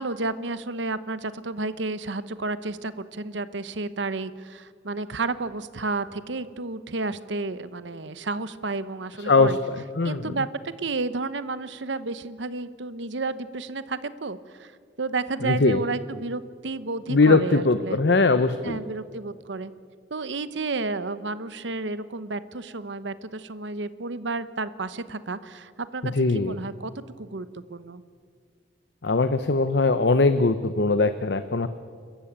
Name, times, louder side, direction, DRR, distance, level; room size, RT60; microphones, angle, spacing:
voice 1, 0.0-9.6 10.0-14.7 15.0-18.0 18.6-19.7 20.1-28.0, right 3 dB, 75° right, 14 dB, 1.0 m, -31 dB
voice 2, 9.3-9.6 10.0-10.2 15.4-15.8 17.1-18.8 26.1-26.5 29.0-31.7, left 3 dB, 65° left, 11 dB, 0.8 m, -20 dB
29.5 x 14.0 x 8.9 m, 2.1 s
head